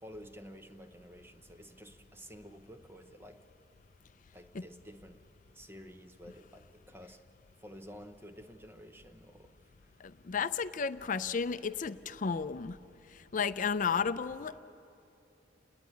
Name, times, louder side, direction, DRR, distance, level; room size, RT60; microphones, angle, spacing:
voice 1, 0.0-3.5 4.3-5.2 5.5-7.2 7.6-10.0 13.6-14.1, equal, 10° right, 7 dB, 0.7 m, -51 dB
voice 2, 10.0-12.8 13.0-14.6, left 6 dB, 45° left, 14 dB, 0.5 m, -33 dB
29.5 x 10.0 x 9.3 m, 2.8 s
head